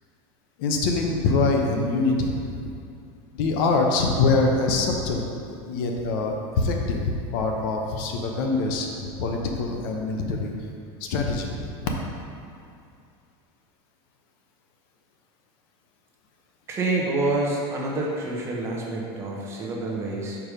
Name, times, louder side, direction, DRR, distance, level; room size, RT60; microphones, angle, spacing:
voice 1, 0.6-2.7 3.3-5.3 5.7-10.5 11.0-11.9, left 3 dB, 55° left, 1 dB, 0.8 m, -24 dB
voice 2, 16.7-20.4, right 2 dB, 20° right, -3 dB, 0.8 m, -27 dB
5.0 x 4.7 x 5.1 m, 2.5 s
supercardioid pair, 170°, 13 cm